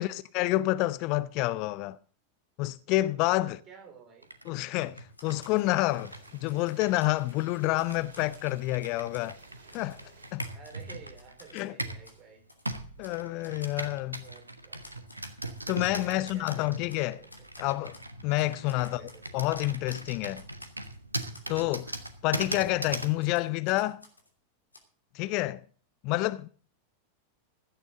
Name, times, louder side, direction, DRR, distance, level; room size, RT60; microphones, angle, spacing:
voice 1, 0.0-2.0 2.6-3.6 4.5-9.4 9.7-10.0 10.3-10.4 11.5-11.7 13.0-14.2 15.7-17.2 17.6-18.0 18.2-19.0 19.3-20.4 21.5-24.0 25.1-25.6 26.0-26.5, left 18 dB, 40° left, 0.6 m, -28 dB
voice 2, 3.3-4.3 10.4-12.4 14.2-14.8 15.9-17.3 18.6-19.2, right 6 dB, 30° right, 4.4 m, -52 dB
Computer keyboard, 4.2-12.1 12.7-23.2, right 2 dB, 85° right, 1.3 m, -40 dB
Typewriter, 5.1-5.7 6.1-7.4 7.8-9.3 9.7-10.0 10.4-11.7 12.0-12.2 12.5-12.6 13.0-13.2 13.4-13.8 14.2-14.4 14.8-17.0 17.3-18.1 18.4-20.0 20.3-21.8 22.0-22.2 22.7-24.3 24.7-24.8, left 2 dB, 80° left, 2.8 m, -54 dB
sound 1, 5.2-10.3, right 3 dB, 65° right, 4.7 m, -56 dB
16.0 x 12.0 x 3.8 m
figure-of-eight pair, 90°, 0 cm